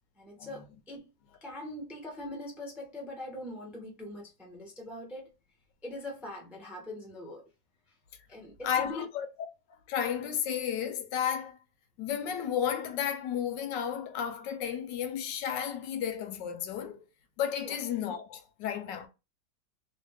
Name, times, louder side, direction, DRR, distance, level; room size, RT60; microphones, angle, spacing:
voice 1, 0.2-1.1 1.4-5.3 5.8-7.5 7.9-8.0 8.3-9.1 17.6-17.8, left 1 dB, ahead, 0.5 m, -42 dB
voice 2, 8.6-9.3 9.7-11.6 12.0-17.1 17.4-19.1, left 9 dB, 80° left, 1.3 m, -33 dB
3.1 x 2.6 x 3.2 m
omnidirectional pair, 1.9 m